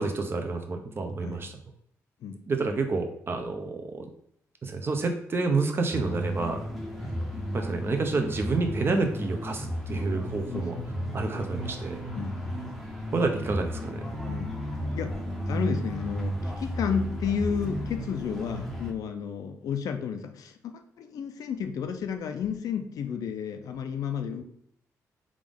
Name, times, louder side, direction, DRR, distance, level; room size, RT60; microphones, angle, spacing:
voice 1, 0.0-1.5 2.5-4.1 4.6-6.6 7.5-10.8 11.1-12.0 13.1-14.1, right 3 dB, 40° right, 5 dB, 0.6 m, -29 dB
sound 1, 5.9-18.9, equal, ahead, 0.7 m, -34 dB
voice 2, 10.5-10.8 12.1-12.8 14.3-14.6 14.9-15.1 15.5-24.4, left 7 dB, 75° left, 6 dB, 0.5 m, -32 dB
3.6 x 2.5 x 3.5 m, 0.70 s
cardioid pair, 85°, 6 cm